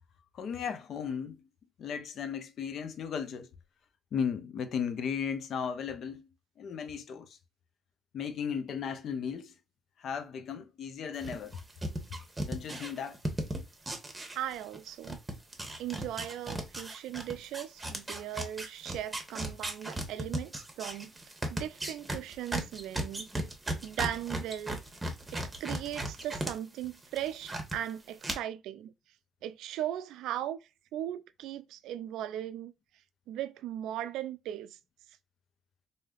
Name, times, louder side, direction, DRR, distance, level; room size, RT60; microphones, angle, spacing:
voice 1, 0.3-1.4 1.8-3.5 4.1-6.2 6.6-7.4 8.1-9.5 10.0-11.6 12.5-13.2, left 7 dB, 70° left, 0.5 m, -35 dB
sound 1, 11.2-14.8 15.0-26.5 26.8-27.8 28.2-28.3, right 1 dB, 20° right, 1.0 m, -36 dB
voice 2, 14.3-15.2 15.8-21.1 21.5-23.3 23.8-24.8 25.3-28.9 29.4-30.6 30.9-32.7 33.3-34.8, right 12 dB, 90° right, 0.3 m, -38 dB
3.3 x 2.7 x 2.3 m
cardioid pair, 90°, 0 cm